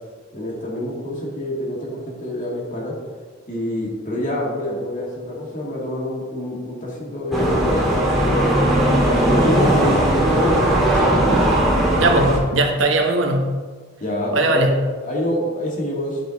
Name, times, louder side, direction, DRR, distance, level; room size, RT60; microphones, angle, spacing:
voice 1, 0.3-2.9 3.5-8.7 9.2-11.2 14.0-14.7 15.0-16.2, left 1 dB, 40° left, -3 dB, 2.1 m, -26 dB
sound 1, 7.3-12.4, right 1 dB, ahead, 1.8 m, -18 dB
voice 2, 12.0-13.5 14.3-14.9, right 2 dB, 70° right, 2 dB, 1.1 m, -19 dB
10.5 x 4.9 x 4.0 m, 1.5 s
head